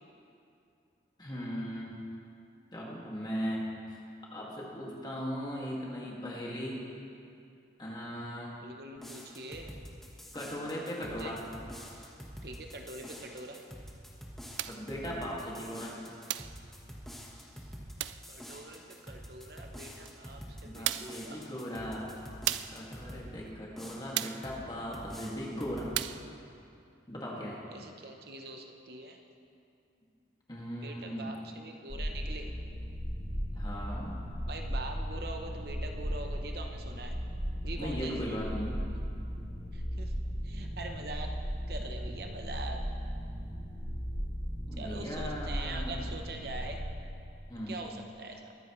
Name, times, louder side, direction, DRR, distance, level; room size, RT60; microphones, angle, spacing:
voice 1, 1.2-1.9 2.7-3.7 4.3-6.8 7.8-8.5 10.3-11.4 14.7-16.0 20.6-22.2 22.7-25.9 27.1-27.6 30.5-31.3 33.5-34.2 37.8-38.8 44.7-46.1 47.5-47.8, equal, 25° left, -4 dB, 2.0 m, -38 dB
voice 2, 8.6-9.8 11.0-11.3 12.4-13.6 18.3-21.4 27.7-29.2 30.8-32.5 34.4-37.2 37.6-38.5 39.7-40.1 40.4-41.3 41.7-42.8 44.8-46.8 47.7-48.5, right 2 dB, 55° right, 3 dB, 0.8 m, -43 dB
sound 1, 9.0-23.3 23.8-24.6 24.9-26.0, equal, ahead, 1.2 m, -47 dB
sound 2, 14.6-14.9 16.3-16.6 18.0-18.3 20.0-20.1 20.8-21.2 22.5-22.8 24.1-24.5 25.9-26.3, right 13 dB, 85° right, 0.4 m, -34 dB
sound 3, 31.9-46.8, equal, 75° left, 2.5 m, -36 dB
22.5 x 9.7 x 3.1 m, 2.6 s
head